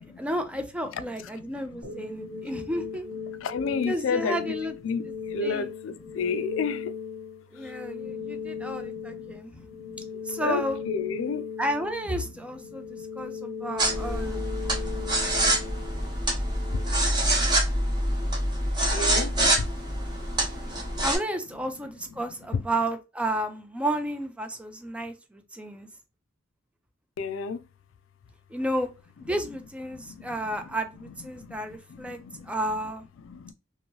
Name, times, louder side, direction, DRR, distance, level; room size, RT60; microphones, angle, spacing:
voice 1, 0.0-3.1 3.9-4.7 5.4-5.7 7.5-9.5 10.2-10.8 11.6-14.5 21.0-25.9 28.5-28.9 29.2-32.2 32.4-33.0, right 1 dB, 5° right, 0.4 m, -32 dB
voice 2, 0.9-2.8 3.3-7.0 7.5-7.7 8.0-11.5 12.7-13.7 14.1-14.4 14.7-15.2 15.8-15.9 16.7-17.1 18.9-19.7 21.7-21.8 22.1-22.2 22.5-22.6 27.2-27.6 29.9-30.8 31.1-32.8 33.2-33.5, left 5 dB, 70° left, 0.3 m, -34 dB
sound 1, 1.8-16.8, left 6 dB, 85° right, 1.4 m, -38 dB
sound 2, 13.8-21.2, right 1 dB, 25° right, 0.9 m, -26 dB
2.9 x 2.6 x 2.9 m
head